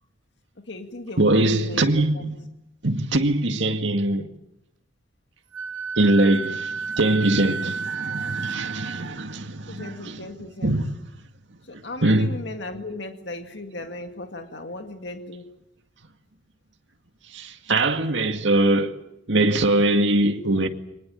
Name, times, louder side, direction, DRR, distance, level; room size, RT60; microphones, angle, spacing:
voice 1, 0.7-1.8 2.1-2.3 9.7-10.8 11.7-15.5, left 2 dB, 60° left, 2.1 m, -37 dB
voice 2, 1.2-2.4 2.8-4.3 6.0-10.2 10.6-10.9 11.7-12.3 17.3-19.0 19.3-20.7, right 2 dB, 70° right, 2.1 m, -22 dB
Wind instrument woodwind instrument, 5.5-9.0, right 5 dB, 90° right, 2.2 m, -31 dB
24.0 x 20.5 x 9.0 m
head